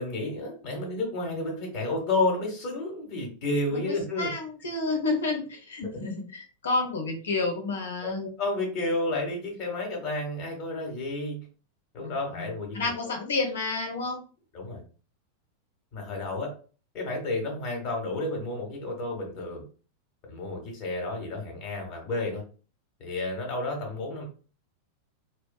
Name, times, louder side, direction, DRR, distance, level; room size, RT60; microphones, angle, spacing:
voice 1, 0.0-4.3 8.0-11.4 11.9-13.1 14.5-14.8 15.9-16.5 16.9-19.6 20.3-22.4 23.0-24.2, left 2 dB, 40° left, 1 dB, 1.1 m, -31 dB
voice 2, 3.7-8.3 12.0-14.2, left 3 dB, 65° left, 4 dB, 0.7 m, -30 dB
2.5 x 2.2 x 2.2 m, 0.37 s
figure-of-eight pair, 90°, 0 cm